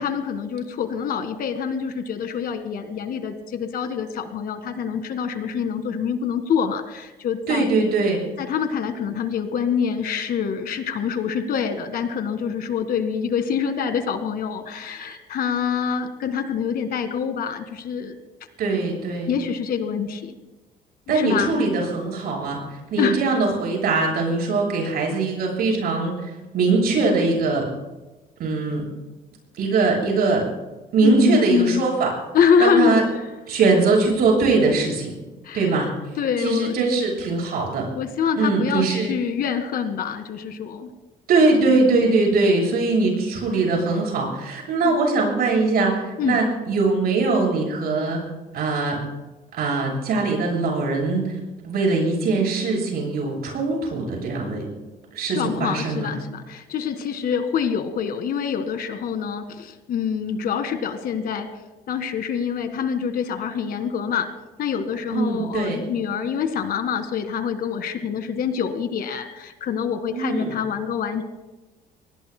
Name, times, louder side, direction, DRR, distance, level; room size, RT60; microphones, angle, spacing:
voice 1, 0.0-7.7 8.4-18.1 19.3-20.3 21.1-21.6 23.0-23.2 31.0-31.9 32.3-33.2 35.4-35.9 36.2-37.0 38.0-40.9 44.8-45.0 46.2-46.4 55.3-61.5 61.9-64.3 64.6-71.2, left 7 dB, 60° left, 8 dB, 1.8 m, -25 dB
voice 2, 7.5-8.2 18.6-19.4 21.1-22.6 22.9-27.7 28.4-28.8 29.6-30.5 30.9-32.1 32.6-33.0 33.5-35.1 35.5-35.9 36.4-37.9 38.4-39.1 41.3-48.2 48.5-49.0 49.6-51.4 51.6-54.7 55.1-56.1 65.1-65.8 70.1-70.5, right 3 dB, 65° right, 0 dB, 7.1 m, -21 dB
26.0 x 19.5 x 2.2 m, 1.1 s
cardioid pair, 110°, 17 cm